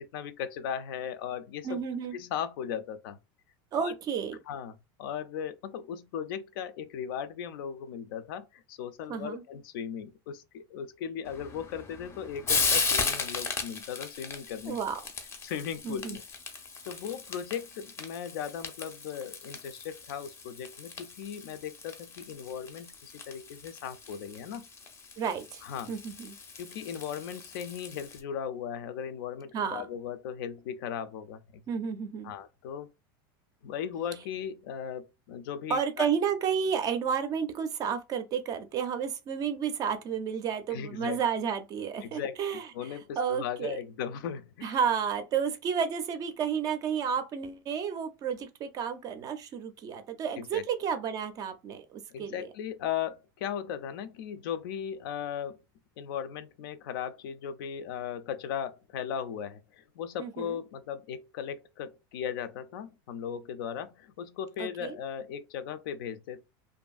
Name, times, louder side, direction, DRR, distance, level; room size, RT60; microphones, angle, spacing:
voice 1, 0.0-1.8 2.1-3.2 3.8-3.9 4.5-14.8 15.4-16.2 16.9-24.7 25.6-25.9 26.6-31.6 32.2-32.9 33.6-36.1 40.7-41.2 42.0-42.4 42.7-44.8 50.4-50.6 52.1-55.6 56.0-66.4, left 8 dB, 75° left, 0.4 m, -37 dB
voice 2, 1.6-2.1 3.7-4.4 9.1-9.4 14.7-15.0 15.8-16.2 25.2-25.6 25.9-26.4 29.5-29.8 31.7-32.3 35.7-43.8 44.6-52.5 60.2-60.6 64.6-65.0, right 7 dB, 30° right, 0.4 m, -31 dB
Frying (food), 11.2-28.2, left 5 dB, 20° left, 0.5 m, -36 dB
2.6 x 2.5 x 2.3 m
supercardioid pair, 145°, 12 cm